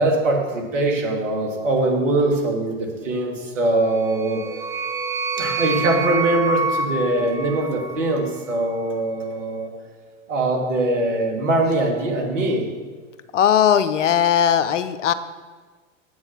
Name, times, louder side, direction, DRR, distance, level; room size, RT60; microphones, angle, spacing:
voice 1, 0.0-4.4 5.4-9.7 10.3-12.6, right 2 dB, 70° right, 1 dB, 2.7 m, -22 dB
sound 1, 3.9-8.3, right 3 dB, 10° right, 0.4 m, -27 dB
voice 2, 13.3-15.1, left 9 dB, 65° left, 13 dB, 0.8 m, -18 dB
9.7 x 7.9 x 5.8 m, 1.4 s
figure-of-eight pair, 100°, 39 cm